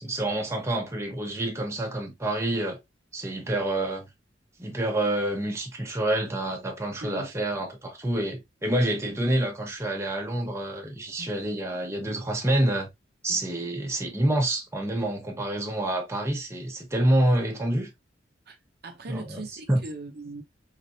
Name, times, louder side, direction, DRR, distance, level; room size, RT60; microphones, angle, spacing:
voice 1, 0.0-2.8 3.1-4.1 4.6-12.9 13.2-17.9 19.1-19.4 19.7-19.8, right 1 dB, 15° right, 0.9 m, -27 dB
voice 2, 18.8-20.4, right 2 dB, 60° right, 0.8 m, -39 dB
3.7 x 3.3 x 2.6 m
head